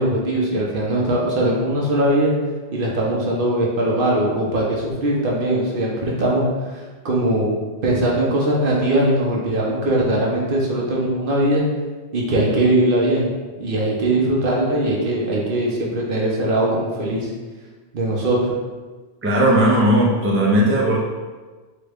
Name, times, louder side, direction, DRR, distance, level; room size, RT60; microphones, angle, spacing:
voice 1, 0.0-2.3 2.7-6.4 6.7-6.8 7.0-7.5 7.8-11.6 12.1-13.3 13.6-17.3 17.9-18.5, right 1 dB, 55° right, -3 dB, 0.8 m, -20 dB
voice 2, 19.2-21.0, right 1 dB, 20° right, -4 dB, 0.4 m, -17 dB
3.9 x 2.3 x 3.3 m, 1.3 s
omnidirectional pair, 1.1 m